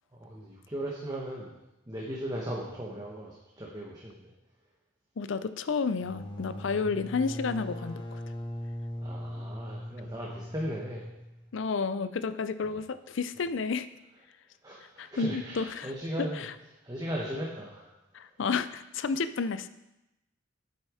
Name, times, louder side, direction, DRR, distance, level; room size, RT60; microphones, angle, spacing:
voice 1, 0.1-1.5 1.9-4.2 9.0-11.0 12.7-12.8 14.6-16.4 16.8-17.9, equal, 20° right, -3 dB, 1.1 m, -37 dB
voice 2, 5.2-8.2 11.5-13.9 15.0-15.9 16.4-16.5 18.1-19.7, left 5 dB, 75° left, 13 dB, 0.5 m, -31 dB
sound 1, 5.9-11.4, left 1 dB, 25° left, 1.0 m, -40 dB
8.4 x 8.1 x 4.9 m, 0.93 s
head